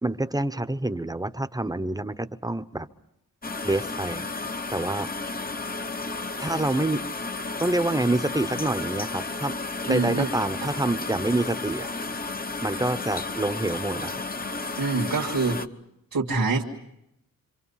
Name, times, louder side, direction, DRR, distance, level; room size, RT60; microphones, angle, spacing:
voice 1, 0.0-2.9 3.6-4.3 4.7-5.1 6.4-7.0 7.6-9.5 9.8-12.2 12.6-14.2, right 2 dB, 10° right, 11 dB, 0.9 m, -27 dB
sound 1, 3.4-15.7, left 3 dB, 25° left, 0.9 m, -33 dB
voice 2, 9.9-10.3 10.6-10.7 14.8-15.6 16.1-16.6, right 3 dB, 75° right, -1 dB, 2.1 m, -25 dB
26.5 x 26.0 x 5.7 m, 0.82 s
wide cardioid pair, 80°, 34 cm